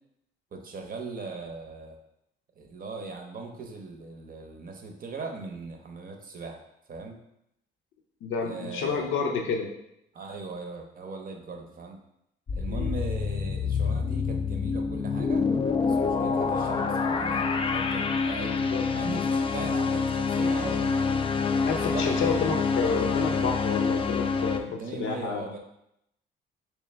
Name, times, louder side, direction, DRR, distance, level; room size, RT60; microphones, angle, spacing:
voice 1, 0.5-2.0 2.6-7.2 8.4-9.1 10.1-12.0 12.5-15.5 15.8-18.6 18.9-21.1 21.7-22.5 24.5-25.6, right 4 dB, 45° right, 3 dB, 0.7 m, -39 dB
voice 2, 8.2-9.7 12.7-12.9 18.4-18.8 21.6-25.4, left 5 dB, 80° left, 2 dB, 0.6 m, -30 dB
sound 1, 12.5-24.6, left 5 dB, 25° left, 0.3 m, -27 dB
3.2 x 3.2 x 3.3 m, 0.80 s
cardioid pair, 90°, 20 cm